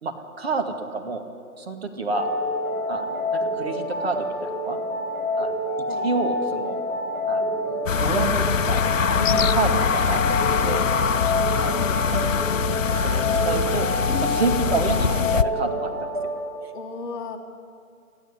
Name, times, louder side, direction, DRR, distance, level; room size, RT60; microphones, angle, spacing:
voice 1, 0.0-1.3 1.6-2.3 2.9-4.8 5.4-5.5 6.0-6.8 7.3-7.6 8.0-10.9 11.6-11.8 12.1-12.2 12.9-13.9 14.2-15.9, right 4 dB, 45° right, 5 dB, 2.2 m, -29 dB
sound 1, 2.1-16.4, left 1 dB, 5° right, 4.3 m, -27 dB
sound 2, 7.9-15.4, left 7 dB, 60° left, 0.8 m, -23 dB
voice 2, 14.9-15.2 16.7-17.4, left 4 dB, 35° left, 0 dB, 2.3 m, -35 dB
25.5 x 15.5 x 9.7 m, 2.4 s
hypercardioid pair, 165°, 44 cm